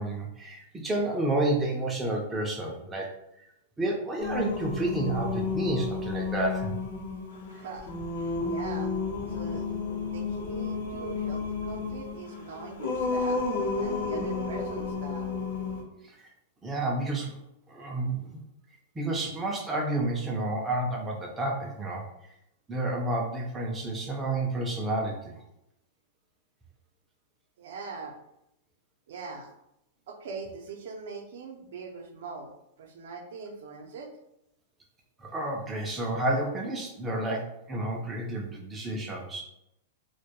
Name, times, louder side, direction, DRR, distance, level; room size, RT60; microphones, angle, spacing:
voice 1, 0.0-3.1 3.8-6.8 16.6-17.4 17.7-18.4 19.0-22.0 22.7-25.4 35.2-39.4, right 2 dB, 10° right, -1 dB, 0.3 m, -30 dB
Singing, 4.2-15.8, left 4 dB, 65° left, 0.6 m, -32 dB
voice 2, 7.5-9.7 10.0-13.4 13.8-15.3 27.6-28.2 29.1-29.5 30.1-34.1, right 4 dB, 70° right, 3 dB, 0.5 m, -42 dB
2.2 x 2.2 x 2.8 m, 0.82 s
supercardioid pair, 155°, 0 cm